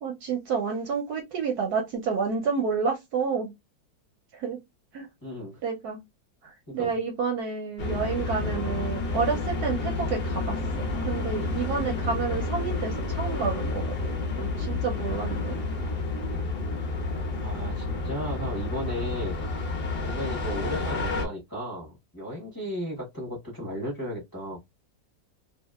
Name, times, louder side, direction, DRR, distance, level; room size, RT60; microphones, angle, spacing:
voice 1, 0.0-3.5 4.3-4.6 4.9-5.1 5.6-6.0 6.4-15.6, right 5 dB, 70° right, 1.0 m, -30 dB
voice 2, 5.2-5.6 6.7-6.9 17.4-19.4 20.0-24.6, equal, 15° left, 0.9 m, -35 dB
sound 1, 7.8-21.2, left 3 dB, 45° left, 0.8 m, -30 dB
3.0 x 2.8 x 2.3 m
omnidirectional pair, 2.0 m